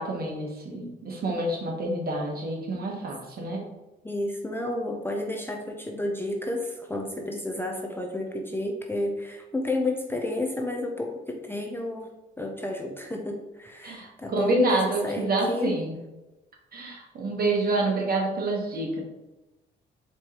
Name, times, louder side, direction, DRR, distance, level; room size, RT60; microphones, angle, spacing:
voice 1, 0.0-3.6 13.8-15.9 16.7-19.0, right 2 dB, 50° right, -1 dB, 1.2 m, -27 dB
voice 2, 4.0-12.1 12.4-15.8, left 1 dB, 10° left, 1 dB, 0.5 m, -31 dB
4.5 x 3.1 x 2.9 m, 1.0 s
cardioid pair, 90°, 20 cm